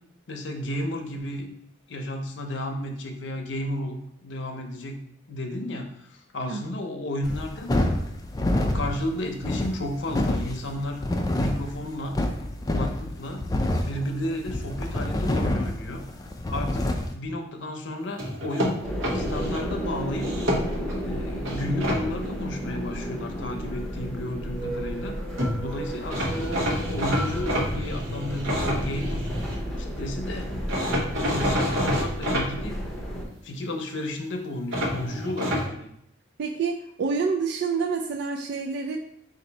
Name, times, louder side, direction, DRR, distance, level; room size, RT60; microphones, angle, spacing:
voice 1, 0.3-1.5 1.9-7.9 8.6-11.0 11.3-12.1 12.7-13.4 13.8-16.0 16.5-18.9 19.1-20.3 21.0-25.2 25.6-29.3 29.8-30.5 31.2-32.8 33.4-35.9, left 1 dB, 65° left, 3 dB, 0.6 m, -33 dB
sound 1, 7.2-17.1, left 1 dB, 20° left, 0.3 m, -27 dB
sound 2, 18.2-19.6 20.2-21.0 21.4-22.0 25.1-25.2 25.4-25.5 26.1-29.6 30.7-32.5 34.7-35.7, equal, 90° right, 1.0 m, -28 dB
sound 3, 18.8-33.3, equal, 5° left, 0.7 m, -32 dB
voice 2, 36.4-39.0, right 5 dB, 60° right, 2 dB, 0.3 m, -28 dB
4.4 x 2.6 x 4.0 m, 0.74 s
head